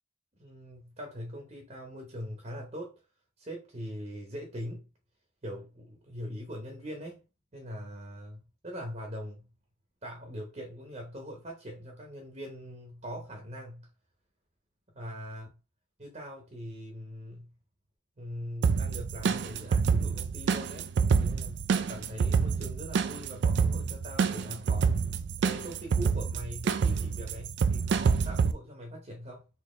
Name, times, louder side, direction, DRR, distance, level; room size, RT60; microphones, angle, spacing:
voice 1, 0.4-3.0 3.4-4.8 5.4-7.2 7.5-9.5 10.0-13.9 14.9-15.5 16.0-17.5 18.2-20.9 21.2-24.9 25.4-29.5, equal, 35° right, 0.9 m, -42 dB
sound 1, 18.6-28.5, right 5 dB, 55° right, 0.3 m, -27 dB
4.2 x 2.8 x 3.2 m
head